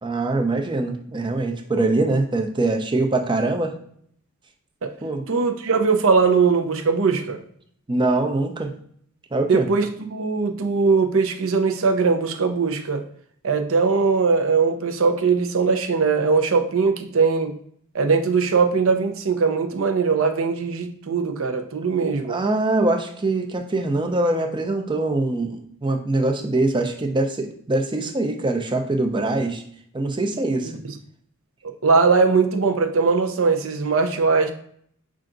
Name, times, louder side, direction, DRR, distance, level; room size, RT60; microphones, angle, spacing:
voice 1, 0.0-3.7 5.0-5.2 7.9-8.7 9.3-9.7 22.3-29.6 29.9-30.7, right 2 dB, 20° right, 4 dB, 0.5 m, -23 dB
voice 2, 5.3-7.4 9.5-13.0 13.4-17.5 17.9-22.3 30.8-30.9 31.8-34.5, right 4 dB, 60° right, 6 dB, 0.6 m, -20 dB
5.6 x 2.5 x 3.8 m, 0.64 s
head